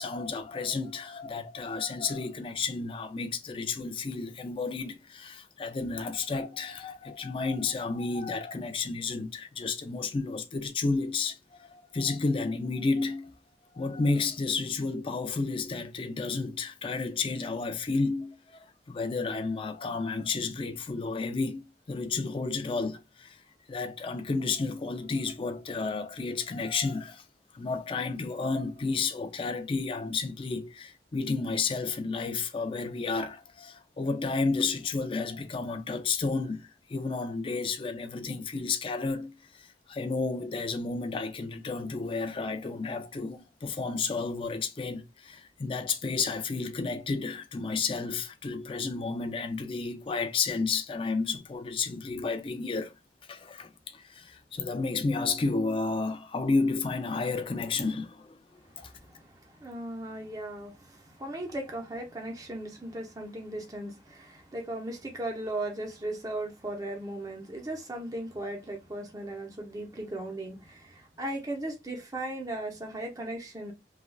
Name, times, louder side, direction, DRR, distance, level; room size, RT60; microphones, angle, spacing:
voice 1, 0.0-13.3 13.7-23.4 23.7-27.2 27.5-52.9 53.3-58.4 58.8-58.9, left 4 dB, 30° left, 0.4 m, -31 dB
voice 2, 58.6-73.7, right 1 dB, 20° right, 0.7 m, -37 dB
3.3 x 2.3 x 2.3 m
head